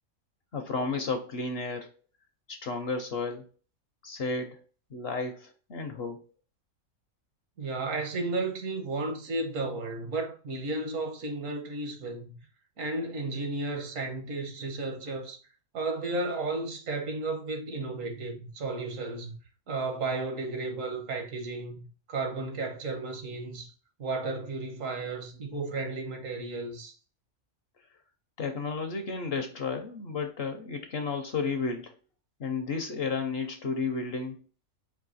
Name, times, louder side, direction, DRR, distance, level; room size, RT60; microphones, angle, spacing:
voice 1, 0.5-1.9 2.5-3.4 4.0-4.6 4.9-6.3 28.4-31.9 32.4-34.4, left 4 dB, 60° left, 0.7 m, -32 dB
voice 2, 7.6-12.4 12.8-15.4 15.7-19.3 19.7-23.7 24.0-26.9, right 3 dB, 70° right, 1.3 m, -33 dB
4.6 x 2.6 x 4.0 m
omnidirectional pair, 1.5 m